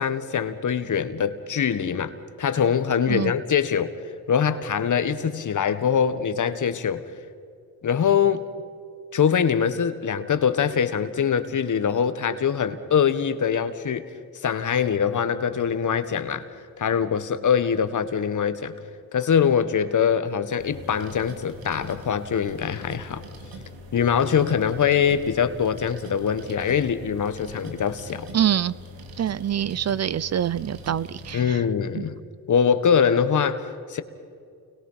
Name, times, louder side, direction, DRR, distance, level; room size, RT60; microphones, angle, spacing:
voice 1, 0.0-3.9 4.3-7.0 7.8-8.4 9.1-14.1 14.4-16.4 16.8-18.7 19.1-23.2 23.9-28.3 31.3-32.1 32.5-34.0, left 7 dB, 55° left, 11 dB, 1.8 m, -23 dB
sound 1, 20.6-31.4, equal, 80° right, 2.7 m, -42 dB
voice 2, 28.3-28.8 29.2-31.6 32.0-32.1, right 10 dB, 45° right, 20 dB, 0.6 m, -25 dB
29.5 x 22.0 x 5.8 m, 2.3 s
cardioid pair, 65°, 36 cm